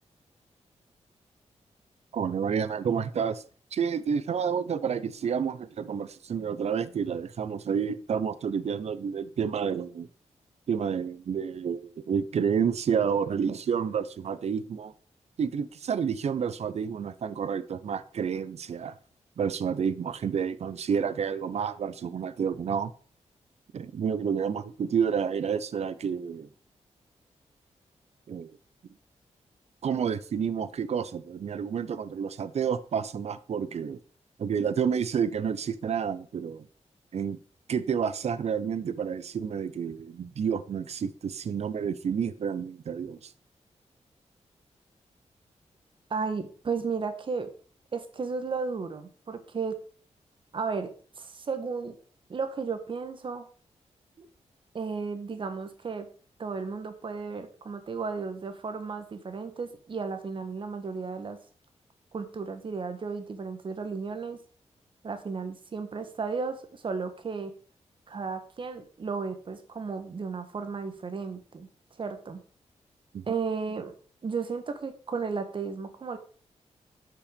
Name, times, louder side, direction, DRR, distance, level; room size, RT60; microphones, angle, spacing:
voice 1, 2.1-3.4 3.7-10.1 10.7-14.9 15.4-18.9 19.4-22.9 23.7-26.5 28.3-28.5 29.8-34.0 34.4-36.7 37.1-37.4 37.7-43.3 73.1-73.2, right 7 dB, 65° right, 14 dB, 0.7 m, -29 dB
voice 2, 46.1-47.5 47.9-49.8 50.5-52.0 52.3-53.5 54.2-54.3 54.7-56.1 56.4-61.4 62.1-64.4 65.0-67.5 68.1-71.7 72.0-72.4 73.3-73.9 74.2-76.2, right 5 dB, 45° right, 9 dB, 1.5 m, -34 dB
12.0 x 5.7 x 5.2 m, 0.42 s
wide cardioid pair, 135°, 12 cm